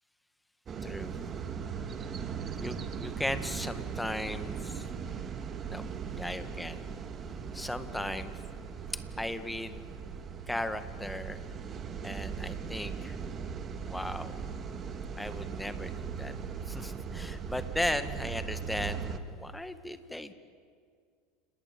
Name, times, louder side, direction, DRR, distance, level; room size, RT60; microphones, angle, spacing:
sound 1, 0.7-19.2, right 6 dB, 35° right, 2.1 m, -39 dB
voice 1, 0.8-1.2 2.6-4.9 5.7-6.9 7.5-8.4 9.2-9.8 10.5-11.4 12.0-13.2 13.9-14.4 15.2-16.3 16.7-20.3, left 1 dB, 5° left, 10 dB, 1.9 m, -37 dB
29.0 x 19.0 x 9.5 m, 2.2 s
hypercardioid pair, 80°, 0 cm